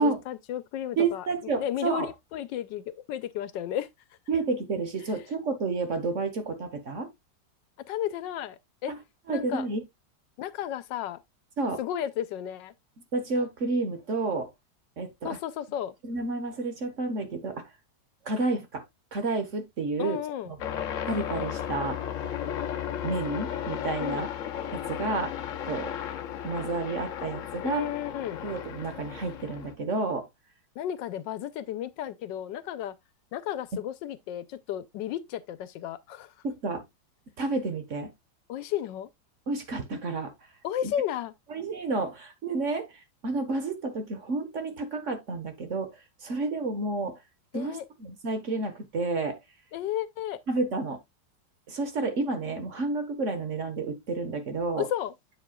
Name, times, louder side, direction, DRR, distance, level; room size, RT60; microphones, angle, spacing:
voice 1, 0.0-3.9 7.9-8.9 9.3-9.7 10.4-11.2 11.8-12.7 15.2-15.9 20.0-20.5 24.0-24.3 27.6-28.5 30.8-33.0 33.3-36.3 38.5-39.1 40.6-41.3 47.5-47.8 49.7-50.4 54.8-55.1, left 11 dB, 85° left, 1.3 m, -33 dB
voice 2, 1.0-2.1 4.3-7.1 8.9-9.0 9.3-9.8 11.6-11.8 13.1-14.5 15.0-15.4 16.0-17.6 18.2-18.8 19.1-20.2 20.5-20.6 21.1-22.0 23.0-24.3 24.7-25.4 25.7-26.0 26.4-27.9 28.4-30.3 36.4-36.8 37.4-38.1 39.5-40.3 40.8-40.9 41.5-47.2 47.5-49.4 50.5-51.0 51.7-54.9, right 3 dB, 45° right, 1.3 m, -30 dB
sound 1, 20.6-29.7, left 9 dB, 55° left, 0.9 m, -34 dB
7.6 x 7.4 x 2.3 m
omnidirectional pair, 1.9 m